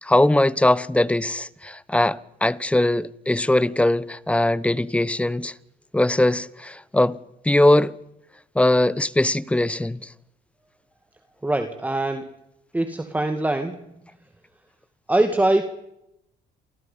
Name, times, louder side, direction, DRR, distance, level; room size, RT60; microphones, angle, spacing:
voice 1, 0.0-5.5 5.9-7.2 7.4-7.9 8.6-10.0, left 1 dB, 5° left, 1.0 m, -20 dB
voice 2, 11.4-12.3 12.7-13.8 15.1-15.6, right 2 dB, 10° right, 2.1 m, -22 dB
28.5 x 28.5 x 5.7 m
cardioid pair, 110°, 17 cm